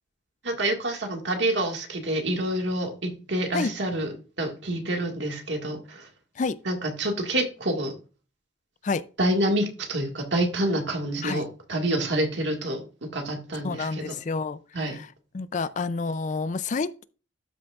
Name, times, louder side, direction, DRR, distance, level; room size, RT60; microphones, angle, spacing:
voice 1, 0.4-6.1 6.7-7.9 9.2-14.1 14.7-15.0, right 1 dB, 75° right, 1.8 m, -27 dB
voice 2, 13.6-14.6 14.9-15.1 15.3-17.0, left 4 dB, 40° left, 0.4 m, -29 dB
12.5 x 6.0 x 2.4 m
head